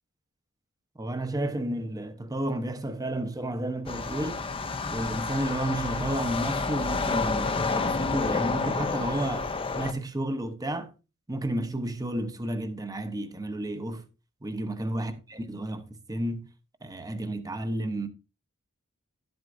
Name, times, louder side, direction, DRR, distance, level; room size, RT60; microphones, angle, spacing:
voice 1, 1.0-4.4 4.9-10.9 11.3-14.0 14.4-16.5 16.8-18.1, right 1 dB, 15° right, 0.8 m, -32 dB
sound 1, 3.9-9.9, left 4 dB, 25° left, 0.6 m, -29 dB
12.0 x 7.9 x 2.6 m
head